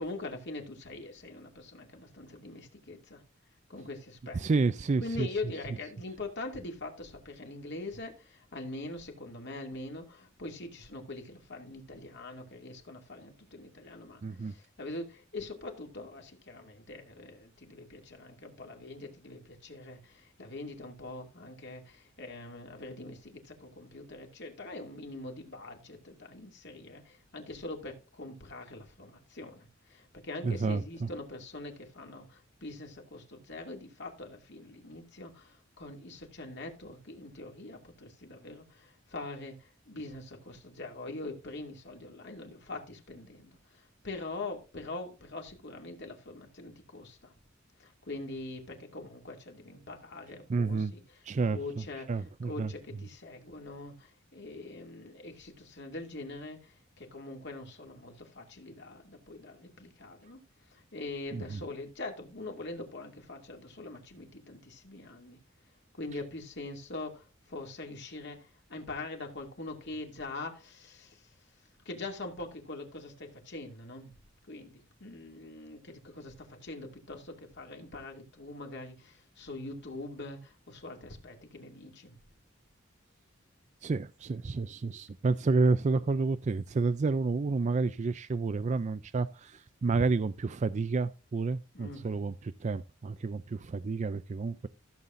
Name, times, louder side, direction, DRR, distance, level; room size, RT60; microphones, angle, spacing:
voice 1, 0.0-3.2 3.7-4.4 5.0-47.3 47.8-51.0 51.5-52.1 52.4-60.4 60.7-65.4 66.0-71.3 71.9-74.1 74.5-82.2 91.7-92.1, left 2 dB, 60° left, 2.5 m, -43 dB
voice 2, 4.3-5.3 14.2-14.5 30.4-31.1 50.5-50.9 51.2-52.7 61.3-61.6 83.8-94.7, right 4 dB, 35° right, 0.4 m, -30 dB
15.0 x 7.3 x 2.6 m
head